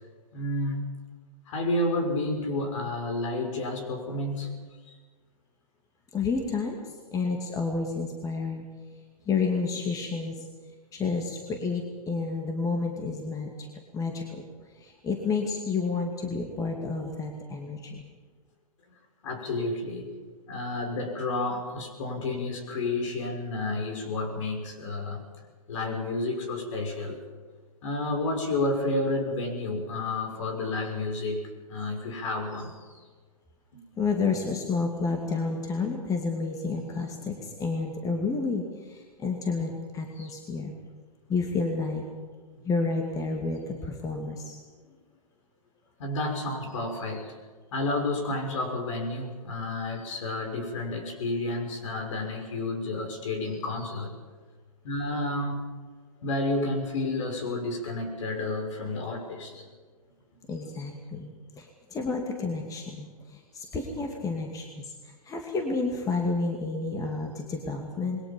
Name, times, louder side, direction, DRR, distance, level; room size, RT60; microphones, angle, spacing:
voice 1, 0.3-0.8 1.5-5.0 19.2-20.1 20.5-25.2 25.7-27.2 27.8-33.0 40.2-40.3 44.9-45.0 46.0-47.3 47.7-54.1 54.8-55.7 56.2-59.7, left 2 dB, 55° left, 4 dB, 6.1 m, -31 dB
voice 2, 6.1-8.6 9.3-10.4 10.9-13.7 13.9-14.4 14.8-18.0 34.0-40.7 41.3-42.1 42.6-44.6 60.5-61.3 61.6-68.2, left 4 dB, 15° left, 2 dB, 2.5 m, -30 dB
27.0 x 22.0 x 5.4 m, 1.5 s
figure-of-eight pair, 115°, 19 cm